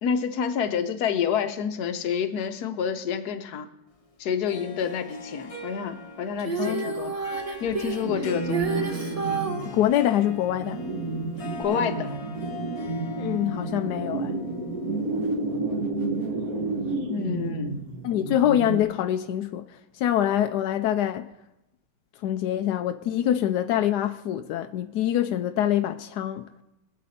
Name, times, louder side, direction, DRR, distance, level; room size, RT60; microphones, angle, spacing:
voice 1, 0.0-3.7 4.2-7.2 7.6-8.8 11.6-12.1 17.1-17.8, left 7 dB, 60° left, 1.2 m, -28 dB
Harp, 4.5-15.6, left 2 dB, 25° left, 0.9 m, -41 dB
Female singing, 6.4-9.7 11.6-11.7, right 5 dB, 25° right, 0.8 m, -30 dB
voice 2, 6.6-7.1 9.6-10.8 13.2-14.4 18.0-19.6 19.9-21.3 22.2-26.5, left 11 dB, 75° left, 0.9 m, -25 dB
sound 1, 8.0-18.8, right 3 dB, 50° right, 1.5 m, -31 dB
22.0 x 7.5 x 4.2 m
omnidirectional pair, 2.2 m